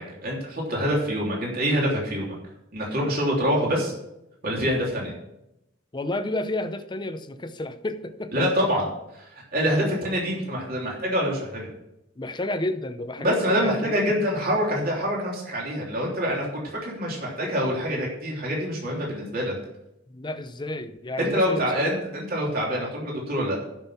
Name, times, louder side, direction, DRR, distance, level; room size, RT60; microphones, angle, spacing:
voice 1, 0.0-2.4 2.7-3.9 4.4-5.1 8.3-8.9 9.1-11.7 13.2-19.5 21.2-23.6, equal, 55° right, -3 dB, 3.3 m, -26 dB
voice 2, 5.9-8.3 8.6-8.7 9.7-9.9 12.2-13.8 14.2-14.3 20.1-21.8, left 1 dB, 25° left, 10 dB, 0.7 m, -31 dB
11.5 x 6.1 x 5.8 m, 0.85 s
head